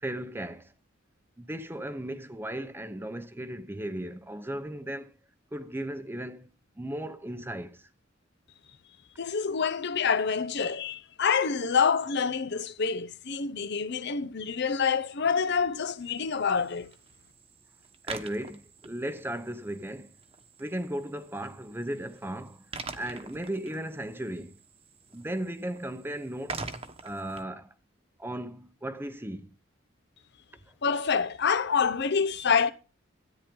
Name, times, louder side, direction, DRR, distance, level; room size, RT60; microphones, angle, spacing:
voice 1, 0.0-0.7 1.4-5.1 5.5-6.5 6.8-7.9 18.0-20.1 20.6-22.7 22.9-24.6 25.1-26.6 27.0-27.7 28.2-29.5, right 1 dB, 10° right, 0.8 m, -36 dB
voice 2, 9.2-16.9 30.8-32.7, left 6 dB, 60° left, 0.8 m, -27 dB
sound 1, 16.0-27.4, right 4 dB, 30° right, 1.2 m, -45 dB
13.5 x 9.5 x 3.8 m
head